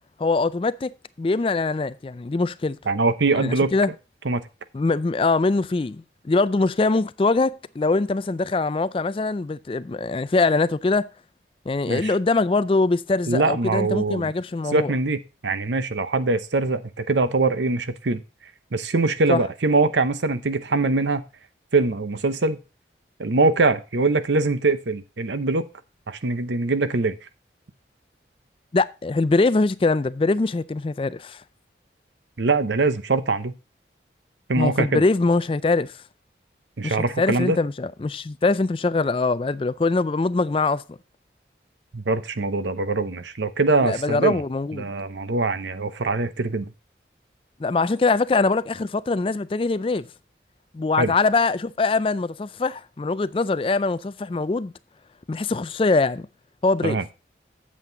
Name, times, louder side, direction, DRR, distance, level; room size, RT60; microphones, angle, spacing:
voice 1, 0.2-0.9 1.2-2.8 3.4-3.9 4.7-11.1 11.7-14.9 19.3-19.4 28.7-31.4 34.6-36.0 36.8-41.0 43.8-44.9 47.6-50.1 50.7-54.7 55.3-56.3 56.6-57.0, left 3 dB, 30° left, 0.3 m, -23 dB
voice 2, 2.9-3.7 4.2-4.4 11.9-12.1 13.3-14.3 14.7-18.2 18.7-21.2 21.7-22.6 23.2-25.7 26.1-27.1 32.4-33.5 34.5-35.0 36.8-37.6 41.9-44.4 44.7-46.7 51.0-51.1 56.8-57.0, right 3 dB, 80° right, 0.8 m, -23 dB
8.3 x 7.5 x 3.8 m
head